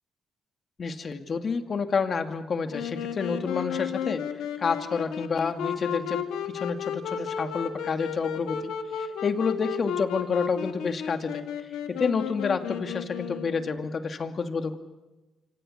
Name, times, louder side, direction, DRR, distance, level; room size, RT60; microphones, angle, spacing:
voice 1, 0.8-4.2 4.6-8.6 9.2-11.4 11.9-14.8, left 5 dB, 45° left, 7 dB, 2.4 m, -29 dB
Wind instrument woodwind instrument, 2.7-13.8, left 9 dB, 85° left, 2.3 m, -33 dB
26.5 x 26.0 x 6.7 m, 1.1 s
cardioid pair, 90°, 0 cm